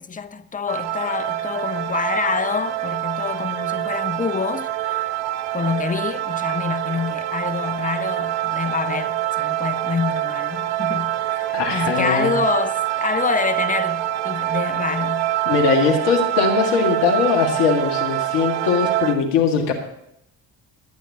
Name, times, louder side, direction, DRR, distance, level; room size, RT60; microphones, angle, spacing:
voice 1, 0.0-5.2 5.5-15.3, left 5 dB, 20° left, 0.8 m, -26 dB
sound 1, 0.7-19.2, right 14 dB, 75° right, 0.9 m, -25 dB
voice 2, 11.5-12.3 15.5-19.7, left 5 dB, 75° left, 2.0 m, -20 dB
23.0 x 8.9 x 2.9 m
hypercardioid pair, 55°, 43 cm